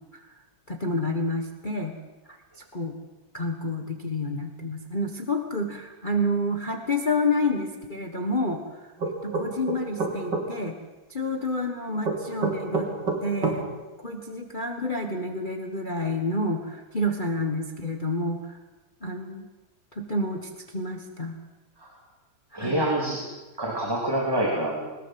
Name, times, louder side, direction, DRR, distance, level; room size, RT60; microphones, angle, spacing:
voice 1, 0.7-2.0 2.3-3.0 3.3-8.9 9.2-10.8 11.1-12.9 13.2-13.7 14.0-18.6 19.0-19.5 19.9-21.4 22.5-22.8, left 1 dB, 25° left, 4 dB, 1.5 m, -29 dB
sound 1, 9.0-10.5 12.0-13.6, right 3 dB, 60° right, 4.2 m, -27 dB
voice 2, 22.5-23.2 23.6-24.9, right 1 dB, 10° right, -2 dB, 3.2 m, -26 dB
21.5 x 20.0 x 7.8 m, 1.2 s
omnidirectional pair, 2.2 m